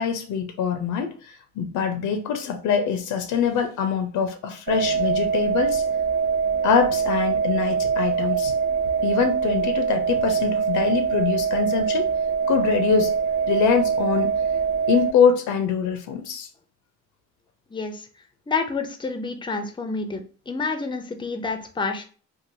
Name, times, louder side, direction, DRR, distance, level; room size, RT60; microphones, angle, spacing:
voice 1, 0.0-5.8 6.6-8.5 9.0-12.1 12.5-13.1 13.5-14.3 14.9-16.5, left 6 dB, 80° left, 7 dB, 0.5 m, -24 dB
sound 1, 4.7-15.1, right 6 dB, 50° right, 0.5 m, -23 dB
voice 2, 17.7-18.1 18.5-22.1, left 4 dB, 15° left, 7 dB, 0.5 m, -29 dB
3.0 x 2.3 x 2.6 m, 0.39 s
cardioid pair, 90°, 30 cm